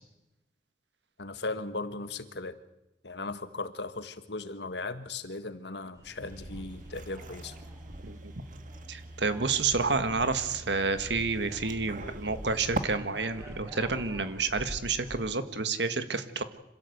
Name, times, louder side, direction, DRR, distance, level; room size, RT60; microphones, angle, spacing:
voice 1, 1.2-2.6 3.0-7.5 12.0-12.6, left 3 dB, 75° left, 11 dB, 1.6 m, -38 dB
sound 1, 5.9-15.2, equal, 20° right, 6.4 m, -47 dB
sound 2, 6.2-12.8, right 2 dB, 50° right, 1.5 m, -42 dB
voice 2, 8.9-16.4, right 4 dB, 80° right, 10 dB, 1.8 m, -29 dB
26.0 x 16.0 x 8.2 m, 0.93 s
head